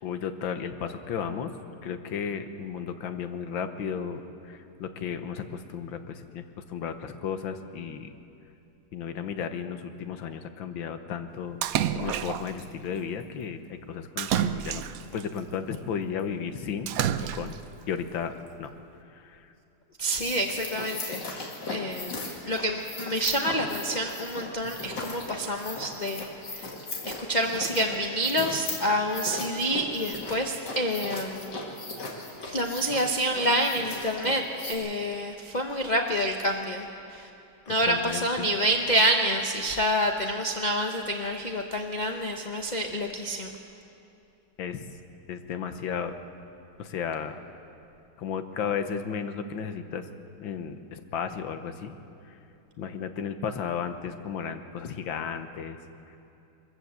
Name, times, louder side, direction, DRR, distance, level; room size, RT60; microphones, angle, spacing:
voice 1, 0.0-1.5 1.8-4.2 4.5-6.4 6.7-8.1 8.9-11.6 11.9-14.8 15.1-16.9 17.3-17.5 17.9-18.3 18.6-18.7 19.3-19.4 37.7-38.5 44.6-44.8 45.3-46.1 46.8-47.4 48.2-50.0 50.4-51.9 52.8-55.8, left 7 dB, 75° left, 8 dB, 1.7 m, -34 dB
Splash splatter, 11.6-12.6 14.2-15.2 16.9-17.7, right 10 dB, 75° right, 0.8 m, -29 dB
sound 1, 20.0-34.7, left 2 dB, 60° left, 2.7 m, -38 dB
voice 2, 20.0-21.2 21.7-26.3 26.5-26.7 27.0-31.5 32.4-37.3 37.7-43.5, equal, 35° left, 3 dB, 0.7 m, -28 dB
22.5 x 14.5 x 8.0 m, 2.8 s
omnidirectional pair, 2.2 m